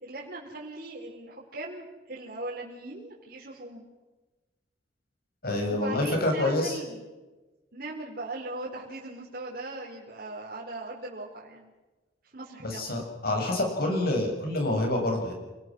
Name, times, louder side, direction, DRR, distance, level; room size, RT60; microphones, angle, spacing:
voice 1, 0.0-3.8 5.6-7.1 7.7-11.7 12.2-12.9, right 2 dB, 50° right, -4 dB, 4.5 m, -39 dB
voice 2, 5.4-6.8 12.6-15.3, left 1 dB, 55° left, 3 dB, 7.4 m, -27 dB
29.5 x 19.5 x 6.3 m, 1.2 s
head